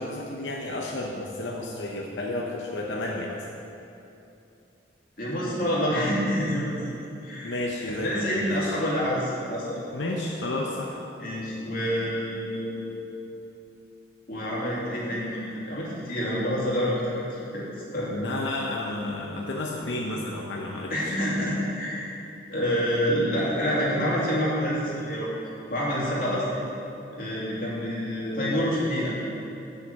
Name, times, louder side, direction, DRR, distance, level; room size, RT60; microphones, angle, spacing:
voice 1, 0.0-3.4 7.4-8.7 9.9-11.0 18.1-21.2, left 2 dB, 90° left, -1 dB, 0.9 m, -31 dB
voice 2, 5.2-6.9 7.2-7.5 8.0-9.8 11.2-13.0 14.3-17.6 17.9-18.1 20.9-22.1 22.5-25.3 25.7-26.6 27.1-29.1, equal, 50° left, -6 dB, 2.7 m, -27 dB
8.2 x 6.6 x 7.4 m, 2.8 s
head